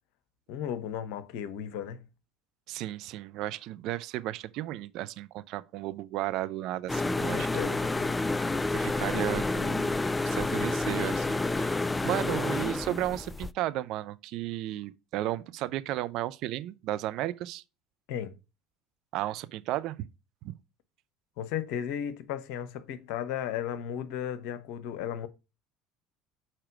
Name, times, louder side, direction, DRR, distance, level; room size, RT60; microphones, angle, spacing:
voice 1, 0.5-2.1 7.0-8.1 18.1-18.3 21.4-25.3, left 9 dB, 60° left, 0.9 m, -35 dB
voice 2, 2.7-7.7 8.7-17.6 19.1-20.0 20.4-20.5, right 14 dB, 55° right, 0.5 m, -34 dB
sound 1, 6.9-13.5, left 2 dB, 15° left, 0.3 m, -29 dB
6.6 x 4.4 x 4.9 m
figure-of-eight pair, 65°, 0 cm